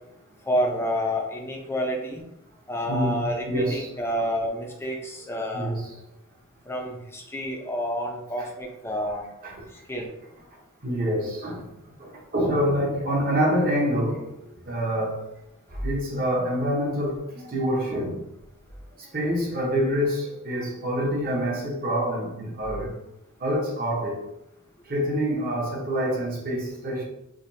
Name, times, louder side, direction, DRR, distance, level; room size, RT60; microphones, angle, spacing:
voice 1, 0.5-2.2 2.7-5.8 6.7-9.3 9.9-10.1, equal, 10° left, 0.5 m, -29 dB
voice 2, 2.9-3.9 5.5-6.0 8.4-8.5 9.4-9.6 10.5-15.2 15.7-18.2 19.0-22.9 23.4-24.3 24.8-27.0, equal, 40° right, 1.0 m, -27 dB
5.0 x 2.3 x 2.7 m
head